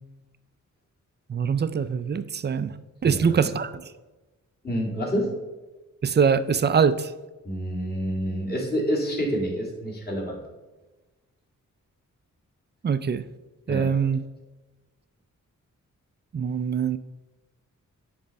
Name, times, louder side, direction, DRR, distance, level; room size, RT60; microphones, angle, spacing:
voice 1, 1.3-2.7 3.0-3.8 6.0-7.1 12.8-13.2 13.7-14.2 16.3-17.0, right 6 dB, 35° right, 13 dB, 0.4 m, -23 dB
voice 2, 3.0-3.5 4.6-5.3 7.4-10.4 13.7-13.9, equal, 30° left, -2 dB, 2.2 m, -28 dB
9.3 x 3.4 x 5.3 m, 1.2 s
wide cardioid pair, 95°, 32 cm